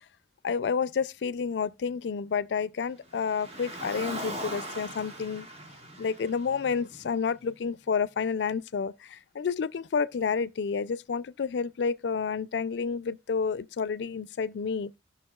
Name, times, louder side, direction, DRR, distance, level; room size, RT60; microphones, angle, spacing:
voice 1, 0.4-5.5 6.0-14.9, left 5 dB, 75° left, 0.4 m, -30 dB
Car, 3.1-7.5, right 1 dB, 35° right, 1.5 m, -40 dB
17.5 x 5.9 x 2.3 m
head